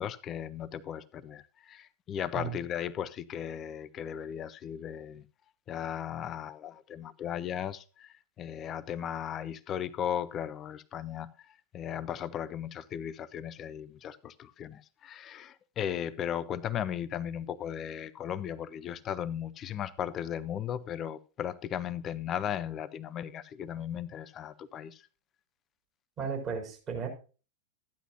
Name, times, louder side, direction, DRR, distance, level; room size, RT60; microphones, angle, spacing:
voice 1, 0.0-5.2 5.7-11.5 11.7-25.0, left 9 dB, 30° left, 0.6 m, -36 dB
voice 2, 26.2-27.1, right 6 dB, 30° right, 4.2 m, -34 dB
13.5 x 10.0 x 2.6 m
figure-of-eight pair, 90°, 0 cm